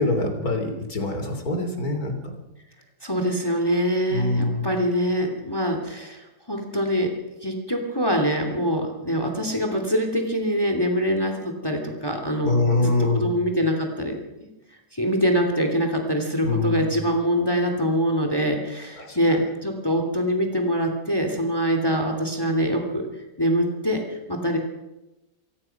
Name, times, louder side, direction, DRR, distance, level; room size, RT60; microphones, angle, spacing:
voice 1, 0.0-2.1 4.1-4.6 12.4-13.3 16.4-16.9 19.0-19.4, left 2 dB, 60° left, 5 dB, 4.0 m, -24 dB
voice 2, 3.0-7.1 7.4-14.5 14.9-23.1 23.4-24.6, equal, 15° left, 4 dB, 2.9 m, -24 dB
26.0 x 18.0 x 6.0 m, 1.0 s
omnidirectional pair, 1.8 m